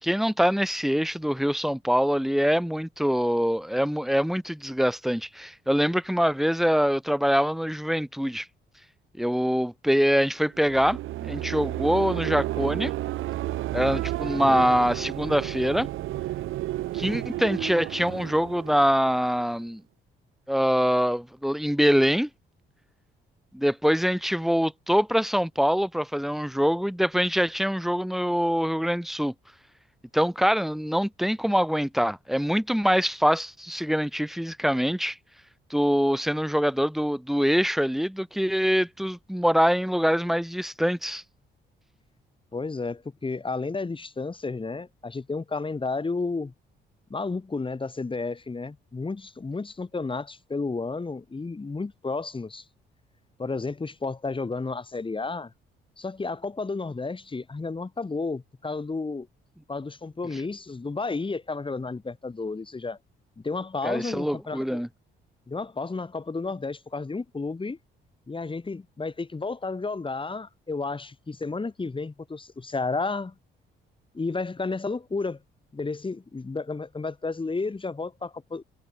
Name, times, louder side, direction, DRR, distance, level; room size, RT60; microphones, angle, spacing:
voice 1, 0.0-8.5 9.2-12.9 13.7-15.9 16.9-19.8 20.5-22.3 23.5-29.3 30.1-35.2 35.7-41.2 63.8-64.9, equal, ahead, 5.0 m, -24 dB
sound 1, 10.5-19.6, right 15 dB, 90° right, 4.2 m, -32 dB
voice 2, 42.5-46.5 47.1-52.6 53.4-55.5 56.0-59.3 59.7-63.0 63.4-64.8 65.5-67.8 68.3-73.3 74.1-75.4 75.7-78.6, left 3 dB, 25° left, 6.8 m, -32 dB
cardioid pair, 90°, 20 cm